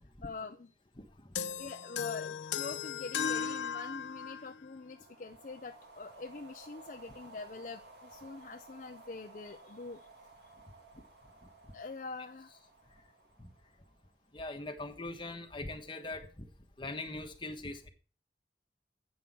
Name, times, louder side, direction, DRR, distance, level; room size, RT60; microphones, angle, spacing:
voice 1, 0.2-0.7 1.5-10.1 11.7-12.5, left 3 dB, 45° left, 0.5 m, -44 dB
voice 2, 1.0-1.4 13.4-13.5 14.3-16.5 16.8-17.9, left 2 dB, 25° left, 1.3 m, -41 dB
sound 1, 1.4-4.6, left 7 dB, 85° left, 0.7 m, -36 dB
sound 2, 4.8-14.3, right 2 dB, 65° right, 2.1 m, -56 dB
8.5 x 6.1 x 7.3 m
head